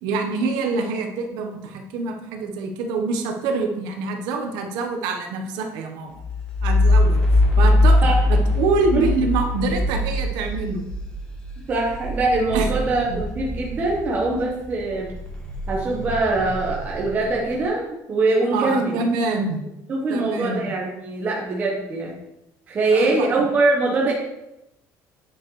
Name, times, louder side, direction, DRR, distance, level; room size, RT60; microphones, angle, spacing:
voice 1, 0.0-6.2 6.6-7.2 7.6-10.8 12.5-12.7 13.0-13.2 18.5-19.6 20.1-20.7 22.9-23.3, right 3 dB, 85° right, 4 dB, 1.1 m, -25 dB
sound 1, 6.2-14.4 14.8-17.4, left 1 dB, 15° left, 1.3 m, -21 dB
voice 2, 11.7-15.1 15.7-19.0 19.9-22.1 22.7-24.1, right 2 dB, 25° right, -3 dB, 1.1 m, -23 dB
8.4 x 6.8 x 3.2 m, 0.87 s
cardioid pair, 175°, 7 cm